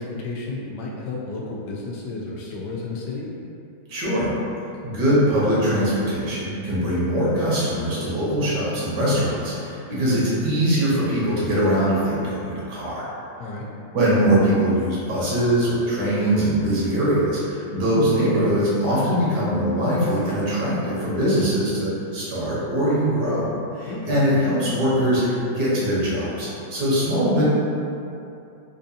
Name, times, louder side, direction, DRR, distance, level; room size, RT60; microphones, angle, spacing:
voice 1, 0.0-3.3 13.4-13.7 23.9-24.2, left 3 dB, 80° left, -3 dB, 1.2 m, -32 dB
voice 2, 3.9-4.3 4.8-13.1 13.9-23.5 23.7-27.4, equal, 80° right, -8 dB, 1.6 m, -22 dB
3.8 x 2.5 x 2.7 m, 2.7 s
omnidirectional pair, 1.8 m